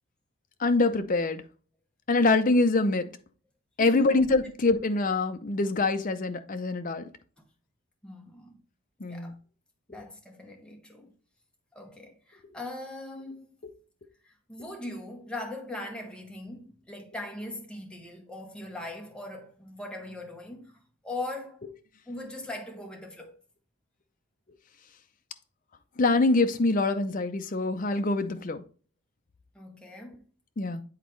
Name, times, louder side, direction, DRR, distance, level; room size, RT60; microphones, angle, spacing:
voice 1, 0.6-1.4 2.1-3.1 3.8-7.0 9.0-9.3 26.0-28.6 30.6-30.8, left 3 dB, 40° left, 0.5 m, -24 dB
voice 2, 3.8-4.2 8.0-8.5 9.0-9.3 9.9-11.1 11.7-13.5 14.3-21.6 22.1-23.4 29.5-30.2, left 2 dB, 5° left, 1.0 m, -40 dB
8.2 x 4.1 x 3.1 m
head